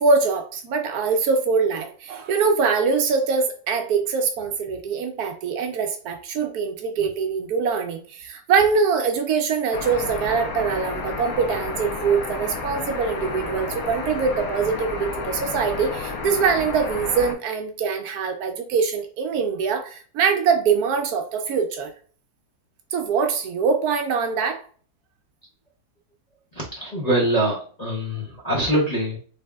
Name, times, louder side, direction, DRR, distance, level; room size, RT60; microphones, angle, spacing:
voice 1, 0.0-21.9 22.9-24.6, right 5 dB, 75° right, 5 dB, 1.1 m, -23 dB
sound 1, 9.7-17.3, left 4 dB, 65° left, 1.1 m, -31 dB
voice 2, 26.5-29.2, right 1 dB, 45° left, -6 dB, 0.5 m, -24 dB
3.3 x 3.3 x 2.2 m, 0.43 s
omnidirectional pair, 1.8 m